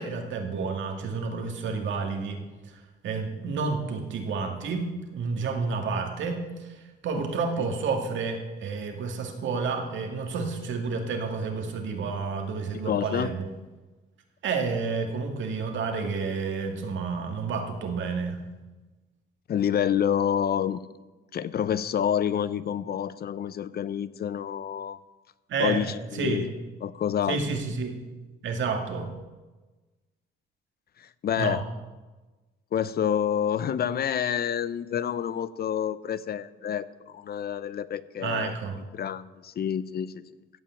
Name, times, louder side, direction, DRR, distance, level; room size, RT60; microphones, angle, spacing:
voice 1, 0.0-2.4 3.0-6.8 7.0-13.5 14.4-18.4 25.5-25.8 26.2-26.4 27.3-28.0 28.4-29.1 31.4-31.6 38.2-38.8, right 4 dB, 70° right, 4 dB, 2.2 m, -30 dB
voice 2, 12.8-13.3 19.5-20.8 21.3-25.0 25.6-26.5 26.8-27.4 31.0-31.6 32.7-38.6 38.9-40.2, left 9 dB, 50° left, 17 dB, 0.6 m, -28 dB
15.5 x 5.8 x 8.5 m, 1.2 s
cardioid pair, 90°, 20 cm